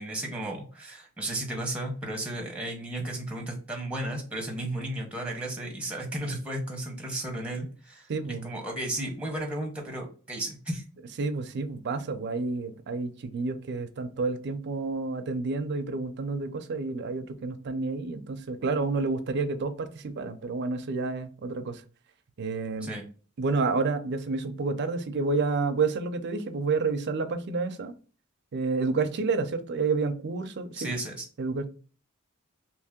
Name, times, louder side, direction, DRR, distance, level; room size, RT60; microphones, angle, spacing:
voice 1, 0.0-8.1 8.4-10.8 22.8-23.0 30.7-31.2, right 1 dB, 5° right, 0.9 m, -34 dB
voice 2, 8.1-8.5 11.2-21.8 22.4-22.9 23.4-27.9 28.5-30.9 31.4-31.7, right 4 dB, 55° right, 0.5 m, -29 dB
2.9 x 2.7 x 3.5 m
head